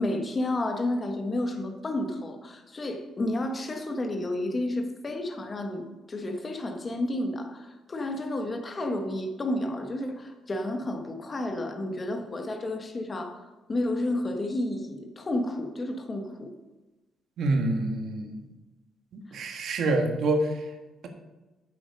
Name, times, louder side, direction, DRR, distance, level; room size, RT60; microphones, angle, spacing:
voice 1, 0.0-13.4 13.7-16.5, left 1 dB, 25° left, 5 dB, 1.4 m, -31 dB
voice 2, 17.4-18.4 19.1-20.5, right 2 dB, 65° right, 5 dB, 1.6 m, -26 dB
9.1 x 8.3 x 5.3 m, 1.1 s
cardioid pair, 135°, 0 cm